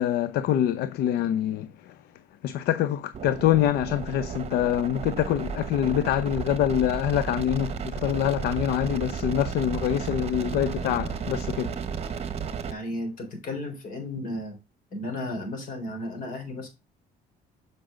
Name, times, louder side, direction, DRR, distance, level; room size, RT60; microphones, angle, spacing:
voice 1, 0.0-1.9 2.4-11.7, left 11 dB, 75° left, 0.6 m, -25 dB
sound 1, 3.1-12.7, right 6 dB, 40° right, 1.1 m, -33 dB
voice 2, 12.7-14.6 14.9-16.7, left 1 dB, 55° left, 3.7 m, -34 dB
7.9 x 5.3 x 3.7 m
cardioid pair, 110°, 17 cm